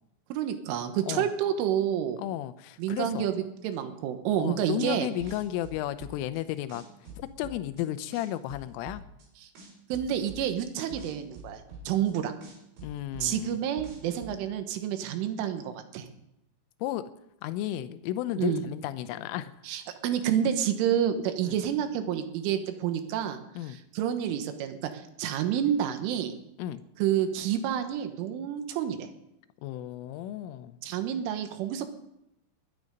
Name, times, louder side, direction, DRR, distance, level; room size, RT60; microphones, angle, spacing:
voice 1, 0.3-2.2 2.8-5.1 9.4-9.5 9.9-12.3 13.2-16.1 18.4-18.6 19.7-26.3 27.0-29.1 30.8-31.9, right 10 dB, 80° right, 7 dB, 3.7 m, -29 dB
voice 2, 2.2-3.3 4.4-6.8 7.2-9.0 12.8-13.7 16.8-17.0 17.4-19.5 21.4-21.6 23.6-23.8 26.6-26.8 29.6-30.8, left 13 dB, 85° left, 12 dB, 3.3 m, -33 dB
sound 1, 4.9-6.4 6.7-7.8 8.1-9.3 9.6-12.1 12.4-14.3, right 2 dB, 55° right, 6.4 m, -45 dB
21.0 x 9.8 x 5.3 m, 0.83 s
omnidirectional pair, 5.7 m